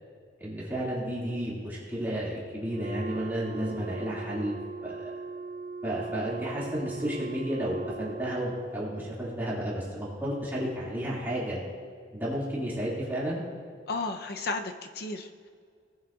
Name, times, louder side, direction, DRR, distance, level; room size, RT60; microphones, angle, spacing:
voice 1, 0.4-4.6 4.8-5.1 5.8-11.6 12.1-13.4, equal, 10° right, -7 dB, 2.2 m, -32 dB
Wind instrument woodwind instrument, 2.6-8.8, right 4 dB, 50° right, 0.4 m, -39 dB
voice 2, 13.9-15.5, left 3 dB, 55° left, 6 dB, 0.6 m, -34 dB
18.5 x 7.4 x 2.4 m, 2.1 s
head